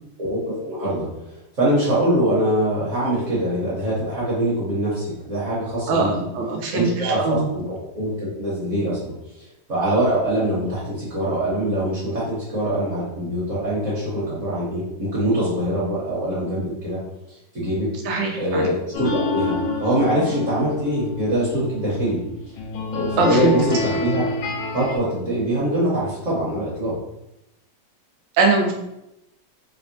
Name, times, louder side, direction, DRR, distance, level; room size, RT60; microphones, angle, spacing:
voice 1, 0.2-1.1 1.5-6.1 6.7-17.0 17.3-17.9 18.4-22.2 22.9-24.2 24.7-27.0, right 1 dB, 50° right, -8 dB, 1.1 m, -23 dB
voice 2, 5.9-7.5 18.0-18.7 23.2-23.5 28.4-28.7, right 3 dB, 85° right, 2 dB, 1.3 m, -21 dB
sound 1, 18.9-25.0, left 3 dB, 85° left, 1.3 m, -27 dB
3.4 x 2.1 x 2.5 m, 0.87 s
omnidirectional pair, 2.0 m